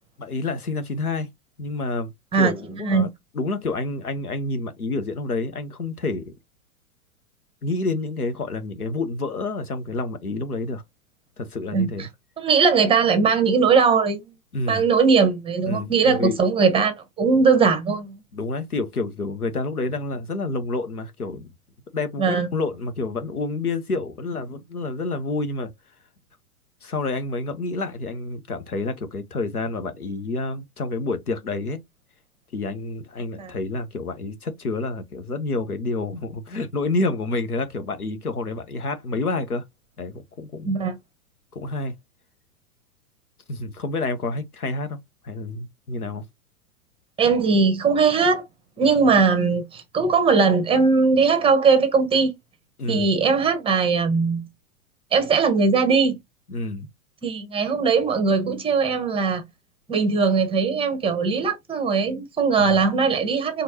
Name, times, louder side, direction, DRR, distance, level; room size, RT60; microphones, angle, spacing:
voice 1, 0.2-1.3 1.6-2.1 2.4-3.1 3.3-6.3 7.6-10.8 11.4-12.1 14.5-14.9 15.7-16.4 18.3-21.5 21.9-25.7 26.8-31.8 32.5-39.6 40.0-40.8 41.5-41.9 43.5-45.0 45.2-46.2 52.8-53.1 56.5-56.9 62.6-62.8, left 3 dB, 90° left, 0.9 m, -28 dB
voice 2, 12.4-14.2 14.7-18.2 22.2-22.5 33.4-33.5 40.7-41.0 47.2-48.4 48.8-52.3 52.9-54.4 55.1-56.2 57.2-59.4 59.9-63.6, right 5 dB, 10° right, 0.9 m, -20 dB
4.5 x 2.5 x 2.8 m
figure-of-eight pair, 105°, 44 cm